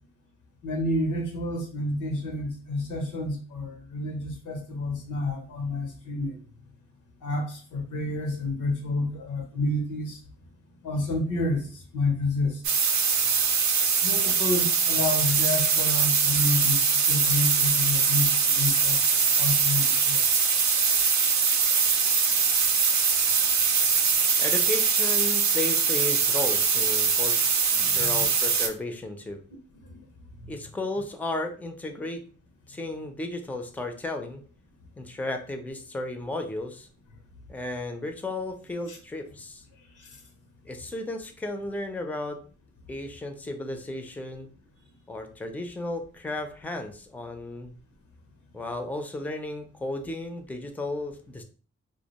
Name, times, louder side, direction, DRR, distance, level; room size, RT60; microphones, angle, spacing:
voice 1, 0.6-6.4 7.2-10.2 10.8-12.6 14.0-20.3 27.7-28.2 29.8-30.0 30.4-30.5 38.9-39.0 40.0-40.2, left 2 dB, 85° left, 3 dB, 0.7 m, -30 dB
sound 1, 12.6-28.7, right 5 dB, 70° right, 0.5 m, -22 dB
voice 2, 24.4-27.4 27.9-29.4 30.5-32.2 32.7-34.4 35.0-36.9 37.5-39.6 40.7-42.4 42.9-44.5 45.1-47.7 48.5-51.4, left 2 dB, 5° left, 6 dB, 0.4 m, -34 dB
2.3 x 2.2 x 2.8 m, 0.39 s
cardioid pair, 50°, 30 cm